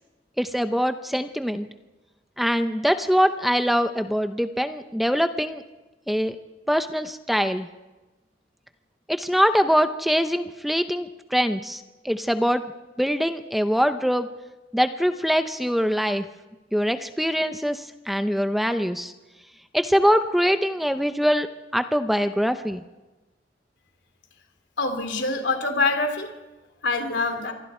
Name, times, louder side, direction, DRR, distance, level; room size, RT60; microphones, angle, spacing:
voice 1, 0.4-1.7 2.4-5.6 6.1-6.4 6.7-7.7 9.1-12.6 13.0-14.3 14.7-16.2 16.7-19.1 19.7-22.8, equal, ahead, 8 dB, 0.7 m, -23 dB
voice 2, 24.8-26.3 26.8-27.5, left 3 dB, 85° left, 5 dB, 3.0 m, -25 dB
26.5 x 23.0 x 4.4 m, 1.1 s
head